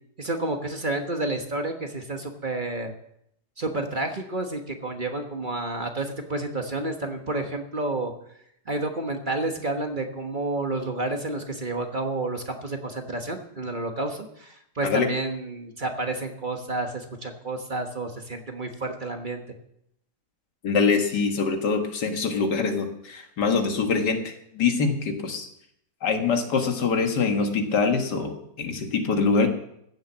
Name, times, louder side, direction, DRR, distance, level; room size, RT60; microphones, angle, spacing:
voice 1, 0.2-2.9 3.6-8.1 8.7-19.4, right 2 dB, 30° right, 4 dB, 1.3 m, -30 dB
voice 2, 20.6-25.5 26.0-29.5, left 4 dB, 90° left, 5 dB, 2.2 m, -24 dB
15.5 x 7.3 x 7.3 m, 0.75 s
omnidirectional pair, 1.7 m